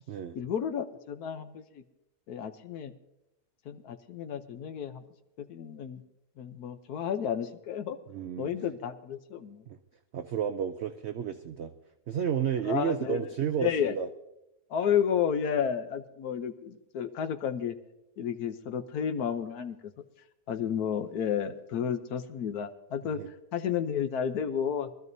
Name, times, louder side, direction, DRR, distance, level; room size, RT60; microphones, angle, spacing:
voice 1, 0.3-1.8 2.3-2.9 3.6-5.0 5.4-6.0 6.4-8.0 8.4-9.6 12.6-13.3 13.6-14.0 14.7-17.8 18.2-19.9 20.5-24.9, left 8 dB, 75° left, 9 dB, 1.3 m, -32 dB
voice 2, 8.1-8.5 9.7-9.8 10.1-11.7 12.1-14.1 23.2-23.3, right 8 dB, 65° right, 9 dB, 0.7 m, -31 dB
23.5 x 14.0 x 2.7 m, 0.89 s
omnidirectional pair, 1.7 m